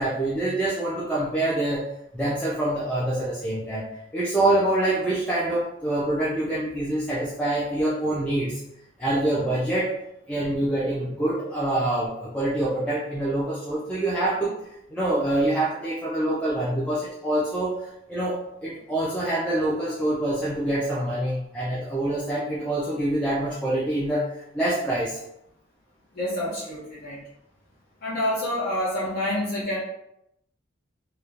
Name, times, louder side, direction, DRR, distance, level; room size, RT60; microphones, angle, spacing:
voice 1, 0.0-1.9 2.1-8.6 9.0-9.9 10.3-14.6 14.9-25.2, right 1 dB, 5° left, -8 dB, 0.3 m, -26 dB
voice 2, 26.1-27.2 28.0-29.8, left 1 dB, 45° left, -9 dB, 0.7 m, -27 dB
3.0 x 2.1 x 2.4 m, 0.80 s
head